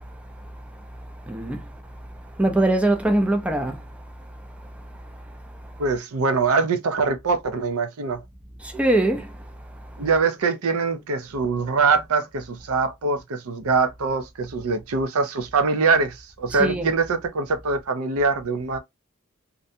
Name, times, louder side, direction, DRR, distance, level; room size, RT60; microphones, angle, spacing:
voice 1, 1.3-1.6 2.4-3.8 8.6-9.3 16.6-16.9, right 1 dB, 5° right, 0.4 m, -22 dB
voice 2, 5.8-8.2 10.0-18.8, right 4 dB, 85° right, 0.5 m, -23 dB
2.5 x 2.1 x 2.6 m
head